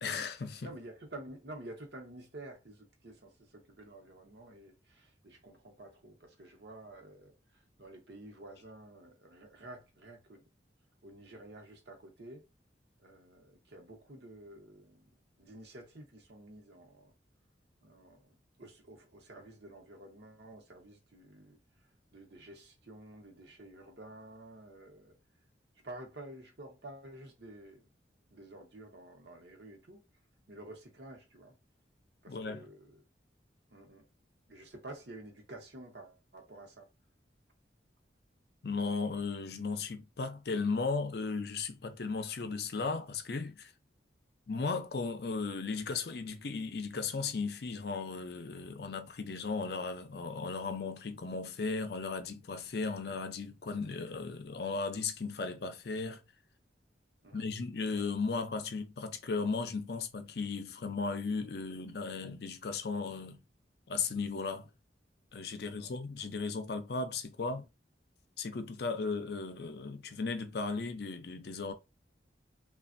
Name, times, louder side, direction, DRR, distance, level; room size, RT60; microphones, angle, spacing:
voice 1, 0.0-0.7 32.3-32.6 38.6-43.7 44.5-56.2 57.3-63.4 63.9-64.7 65.3-67.7 68.4-71.7, left 4 dB, 60° left, 0.5 m, -36 dB
voice 2, 0.6-10.4 11.0-12.4 13.0-15.1 15.4-17.1 17.8-21.6 22.1-25.1 25.8-27.8 28.3-30.0 30.5-31.6 32.2-33.0 33.7-34.1 34.5-36.9 57.2-57.5 65.6-65.9, right 1 dB, 65° right, 1.0 m, -50 dB
3.3 x 2.4 x 2.5 m
head